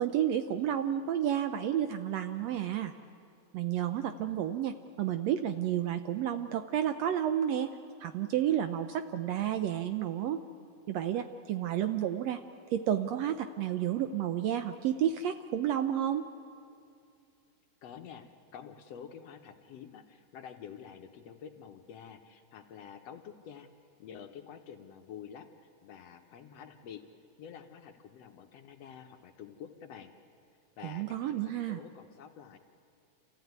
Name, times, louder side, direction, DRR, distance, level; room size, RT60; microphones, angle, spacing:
voice 1, 0.0-2.9 3.5-7.7 8.0-10.4 10.9-12.4 12.7-16.3 30.8-31.8, right 10 dB, 75° right, 9 dB, 1.6 m, -31 dB
voice 2, 17.8-23.7 24.0-27.0 27.4-30.1 30.8-31.3 31.7-32.6, left 8 dB, 65° left, 5 dB, 1.8 m, -48 dB
28.0 x 15.0 x 9.4 m, 2.5 s
omnidirectional pair, 3.5 m